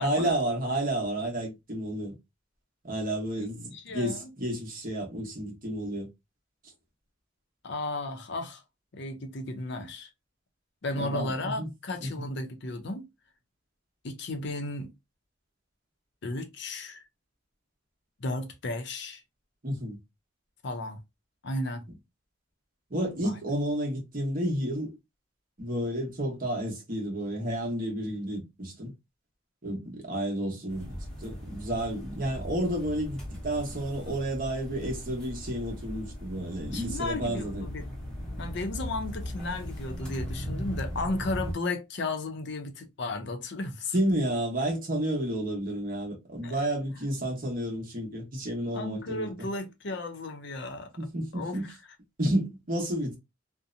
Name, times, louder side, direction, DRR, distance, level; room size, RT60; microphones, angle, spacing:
voice 1, 0.0-2.2 2.8-6.1 11.0-11.7 12.0-12.1 19.6-20.0 22.9-25.0 25.6-28.9 29.6-37.7 43.9-49.5 51.0-51.7 52.2-53.2, right 1 dB, 45° right, 1.0 m, -31 dB
voice 2, 3.4-4.2 7.6-8.6 8.9-10.1 10.8-13.1 14.0-14.9 16.2-17.0 18.2-19.2 20.6-21.0 21.4-21.8 23.2-23.3 36.7-37.9 38.4-43.9 46.4-46.6 48.7-50.9 51.3-51.6, left 2 dB, 60° left, 0.6 m, -34 dB
sound 1, 30.7-41.5, equal, 5° left, 0.8 m, -38 dB
2.7 x 2.1 x 2.4 m
head